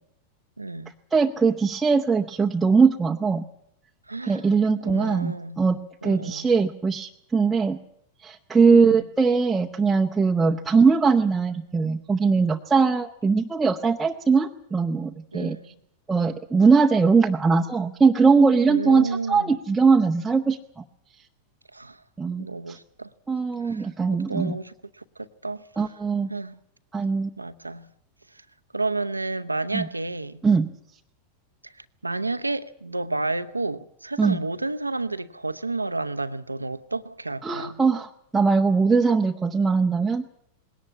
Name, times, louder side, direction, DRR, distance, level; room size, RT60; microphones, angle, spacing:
voice 1, 0.6-0.9 4.1-4.4 4.8-5.6 6.0-6.5 8.7-9.1 15.3-15.6 18.7-19.5 21.7-22.0 22.4-23.1 23.6-23.9 24.3-25.6 26.3-26.6 27.4-27.9 28.7-30.4 31.6-37.8, right 3 dB, 85° right, 0.8 m, -31 dB
voice 2, 1.1-3.4 4.2-7.8 8.2-15.6 16.1-20.8 22.2-22.8 23.3-24.6 25.8-26.3 26.9-27.3 29.7-29.9 30.4-30.7 34.2-34.4 37.4-40.2, right 4 dB, 10° right, 0.8 m, -21 dB
20.5 x 17.5 x 8.6 m
figure-of-eight pair, 90°, 0 cm